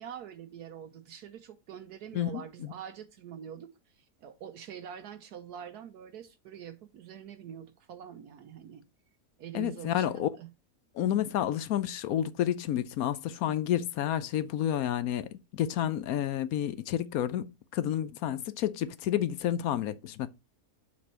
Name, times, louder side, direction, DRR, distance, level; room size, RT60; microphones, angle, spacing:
voice 1, 0.0-3.7 4.2-8.8 9.4-10.5 11.0-11.2, right 9 dB, 75° right, 1.2 m, -45 dB
voice 2, 2.1-2.7 9.5-10.3 11.0-20.3, left 11 dB, 70° left, 1.0 m, -30 dB
7.4 x 4.3 x 4.2 m
omnidirectional pair, 1.7 m